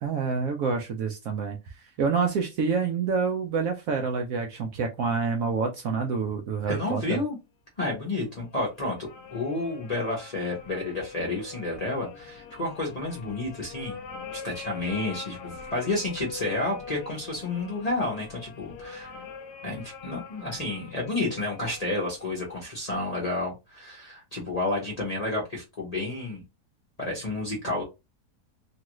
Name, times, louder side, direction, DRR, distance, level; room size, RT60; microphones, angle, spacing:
voice 1, 0.0-1.6 2.0-7.2, right 5 dB, 70° right, 0.9 m, -27 dB
voice 2, 6.7-7.4 7.8-9.0 9.3-14.0 14.3-19.1 19.6-26.4 27.0-27.8, left 2 dB, 30° left, 0.8 m, -30 dB
sound 1, 8.2-22.6, left 5 dB, 80° left, 1.1 m, -44 dB
3.0 x 2.4 x 2.9 m
omnidirectional pair, 1.8 m